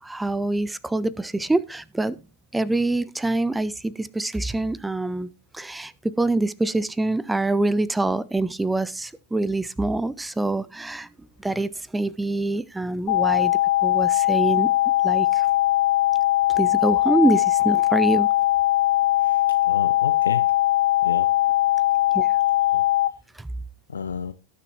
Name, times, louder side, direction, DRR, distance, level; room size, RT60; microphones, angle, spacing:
voice 1, 0.0-2.2 2.5-11.1 11.4-13.5 13.8-14.7 15.0-15.5 16.5-18.3 22.1-22.3 23.4-23.5, right 2 dB, 5° right, 0.5 m, -25 dB
sound 1, 13.1-23.1, left 15 dB, 45° left, 2.1 m, -20 dB
voice 2, 19.2-20.5 21.0-21.3 22.7-22.8 23.9-24.3, left 6 dB, 70° left, 0.6 m, -32 dB
18.5 x 6.7 x 2.9 m
figure-of-eight pair, 90°, 0 cm